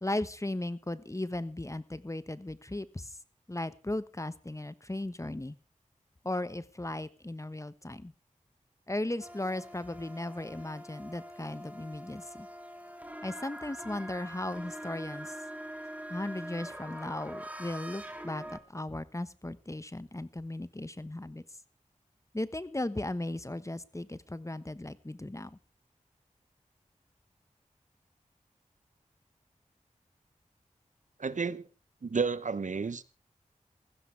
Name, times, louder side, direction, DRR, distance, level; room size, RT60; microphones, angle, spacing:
voice 1, 0.0-3.2 3.5-5.5 6.2-8.1 8.9-12.5 13.2-15.3 16.1-21.4 22.3-25.6, left 1 dB, 25° left, 1.2 m, -36 dB
sound 1, 9.2-18.6, right 1 dB, 10° right, 2.8 m, -44 dB
voice 2, 31.2-31.6 32.0-33.0, right 5 dB, 70° right, 0.9 m, -31 dB
20.0 x 15.0 x 3.4 m
cardioid pair, 40°, 13 cm